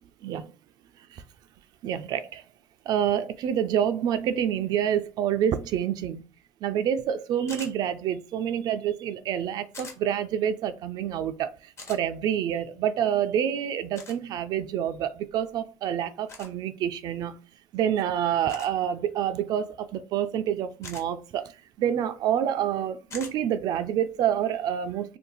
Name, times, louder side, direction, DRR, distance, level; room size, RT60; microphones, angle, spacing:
voice 1, 1.8-2.4 2.9-6.2 6.6-11.5 11.9-17.3 17.7-21.5 21.8-25.2, right 9 dB, 50° right, 0.3 m, -27 dB
sound 1, 7.5-7.7 9.7-10.0 11.8-12.0 13.9-14.2 16.3-16.5 18.5-18.8 20.8-21.1 23.1-23.3, left 3 dB, 30° left, 1.0 m, -42 dB
2.7 x 2.3 x 3.8 m
supercardioid pair, 105°, 9 cm